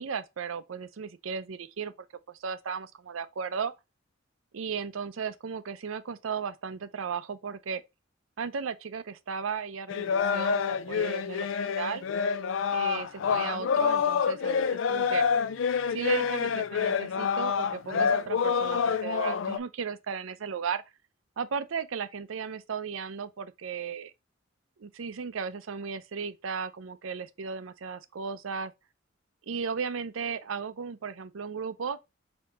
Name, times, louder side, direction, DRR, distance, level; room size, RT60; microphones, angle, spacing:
voice 1, 0.0-1.9 2.3-3.7 4.5-7.8 8.4-11.5 11.8-12.1 12.7-15.3 15.9-20.8 21.4-24.1 24.8-28.7 29.5-32.0, right 6 dB, 85° right, 0.5 m, -35 dB
sound 1, 9.9-19.6, left 6 dB, 70° left, 0.4 m, -27 dB
4.3 x 2.8 x 4.1 m
head